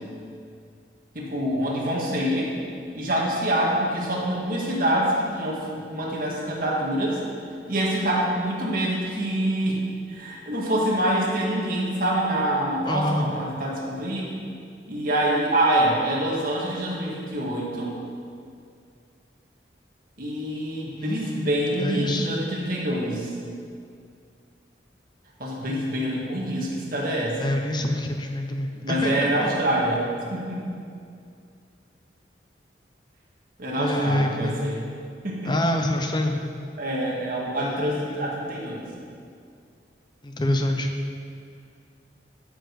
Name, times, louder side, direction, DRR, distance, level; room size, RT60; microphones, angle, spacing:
voice 1, 1.2-2.5 2.9-7.2 7.7-9.8 10.1-14.4 14.9-17.9 20.2-23.3 25.4-27.5 28.8-30.6 33.6-34.8 35.2-35.5 36.8-38.9, right 1 dB, 50° right, -3 dB, 1.8 m, -26 dB
voice 2, 12.9-13.3 21.0-22.3 27.4-29.5 33.8-34.6 35.4-36.4 37.6-38.2 40.2-40.9, left 1 dB, 25° left, 4 dB, 0.7 m, -26 dB
12.5 x 5.1 x 5.2 m, 2.3 s
head